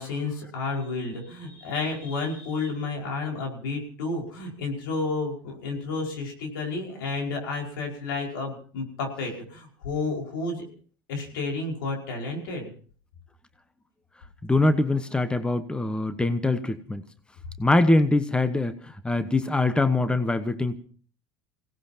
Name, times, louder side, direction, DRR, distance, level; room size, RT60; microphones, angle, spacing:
voice 1, 0.0-10.6 11.1-12.7, left 3 dB, 80° left, 1 dB, 5.3 m, -31 dB
voice 2, 14.4-17.0 17.6-20.8, left 2 dB, 10° left, 11 dB, 1.1 m, -23 dB
28.5 x 17.5 x 2.9 m, 0.43 s
hypercardioid pair, 85°, 11 cm